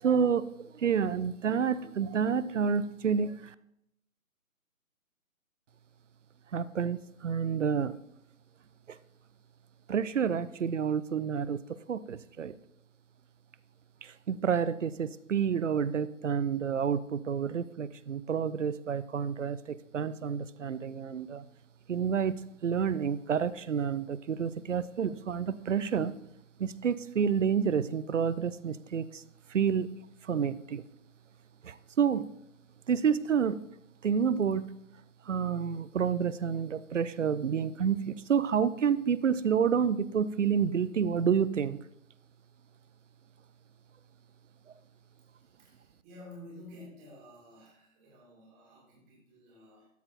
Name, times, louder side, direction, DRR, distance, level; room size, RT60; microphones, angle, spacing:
voice 1, 0.0-3.5 6.5-8.0 8.9-9.0 9.9-12.5 14.0-21.4 21.9-26.1 26.6-29.2 29.5-29.9 30.2-30.8 31.6-32.3 32.9-33.6 34.0-34.7 35.3-41.8, right 7 dB, 60° right, 16 dB, 0.5 m, -29 dB
voice 2, 45.3-49.9, left 1 dB, 15° right, -3 dB, 1.8 m, -52 dB
12.5 x 4.3 x 4.1 m, 0.78 s
figure-of-eight pair, 150°, 42 cm